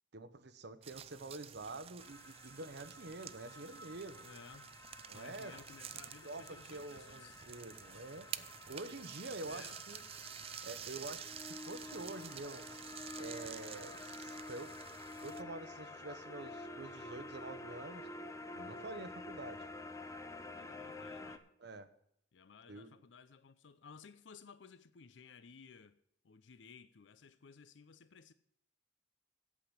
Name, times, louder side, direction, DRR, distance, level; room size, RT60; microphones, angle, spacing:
voice 1, 0.1-4.3 5.1-5.5 6.2-10.0 10.6-12.7 13.2-14.7 15.2-18.1 18.5-19.7 21.6-21.9 22.7-22.9, right 2 dB, 65° right, 0.9 m, -47 dB
sound 1, 0.8-15.4, right 9 dB, 30° right, 0.4 m, -50 dB
sound 2, 2.0-21.4, left 2 dB, 15° left, 0.7 m, -50 dB
voice 2, 4.2-4.7 5.1-7.5 9.4-9.8 20.5-21.4 22.3-26.0 26.2-28.3, left 5 dB, 75° left, 0.5 m, -57 dB
8.4 x 7.8 x 8.7 m
head